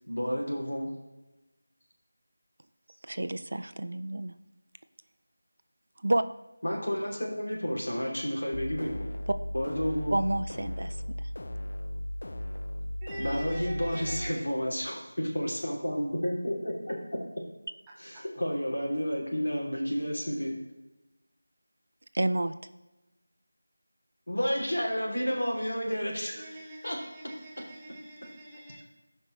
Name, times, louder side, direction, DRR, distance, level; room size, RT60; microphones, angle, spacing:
voice 1, 0.1-0.9 6.6-9.0 9.5-10.2 13.2-17.0 18.0-20.5 24.3-26.5 26.8-27.0, equal, 80° left, 2.9 m, -31 dB
voice 2, 3.0-4.3 6.0-6.2 9.3-9.4 10.1-11.0 22.1-22.6, right 1 dB, 60° right, 0.5 m, -29 dB
sound 1, 8.5-14.3, left 1 dB, 60° left, 0.6 m, -36 dB
voice 3, 13.0-14.4 26.3-28.8, right 1 dB, 10° right, 1.1 m, -44 dB
15.0 x 5.4 x 3.2 m
figure-of-eight pair, 170°, 0 cm